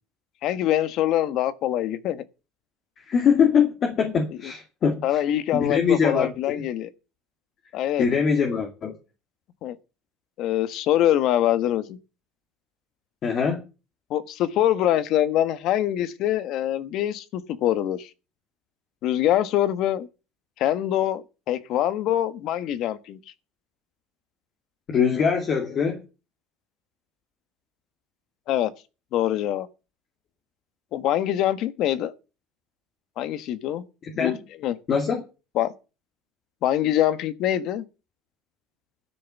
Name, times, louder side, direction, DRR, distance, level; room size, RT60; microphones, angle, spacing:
voice 1, 0.4-2.2 4.4-4.5 5.0-6.9 7.7-8.1 9.6-9.8 10.4-12.0 14.1-18.1 19.0-20.1 20.6-23.2 28.5-28.7 29.1-29.7 30.9-32.1 33.2-33.8 34.1-34.3 34.6-34.8 35.5-35.7 36.6-37.8, left 12 dB, 55° left, 1.3 m, -24 dB
voice 2, 3.1-5.2 5.5-6.6 8.0-8.9 13.2-13.6 24.9-26.0 34.0-34.4 34.9-35.2, left 6 dB, 40° left, 2.3 m, -23 dB
12.5 x 7.0 x 8.1 m
supercardioid pair, 125°, 0 cm